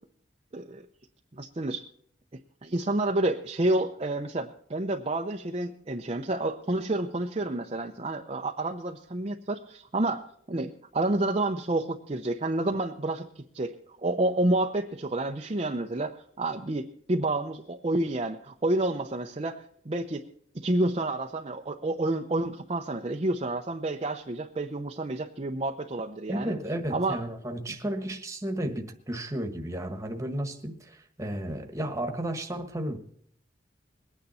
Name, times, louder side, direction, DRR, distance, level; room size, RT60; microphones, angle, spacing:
voice 1, 1.3-1.9 2.6-13.3 13.5-13.7 14.0-20.2 20.5-26.5 26.9-27.2, right 2 dB, 35° right, 0.7 m, -29 dB
voice 2, 26.3-33.0, right 1 dB, 15° right, 1.5 m, -33 dB
22.0 x 9.5 x 4.2 m
head